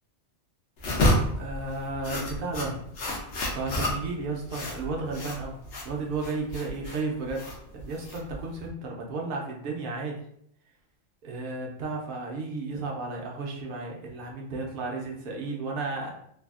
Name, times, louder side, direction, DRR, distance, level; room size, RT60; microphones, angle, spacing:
sound 1, 0.8-8.7, left 1 dB, 75° left, 1.0 m, -30 dB
voice 1, 1.4-2.9 3.5-5.6 5.8-7.5 7.7-10.2 11.2-16.1, right 3 dB, 55° right, -1 dB, 0.7 m, -33 dB
3.3 x 2.3 x 2.4 m, 0.70 s
omnidirectional pair, 1.2 m